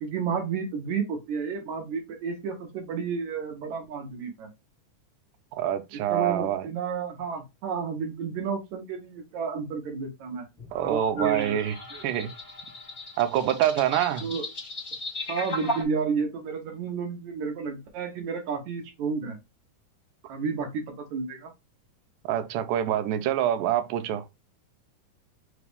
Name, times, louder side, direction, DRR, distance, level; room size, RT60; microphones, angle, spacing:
voice 1, 0.0-4.5 5.9-10.4 10.8-11.6 11.9-12.0 14.2-14.5 15.3-19.4 20.3-21.5, right 5 dB, 70° right, 2.1 m, -31 dB
voice 2, 5.5-6.7 10.7-11.8 12.0-12.3 13.2-14.3 20.2-20.3 22.3-24.3, right 11 dB, 90° right, 2.1 m, -26 dB
sound 1, 10.6-15.8, left 1 dB, 25° left, 1.2 m, -36 dB
5.1 x 2.4 x 3.3 m
omnidirectional pair, 3.6 m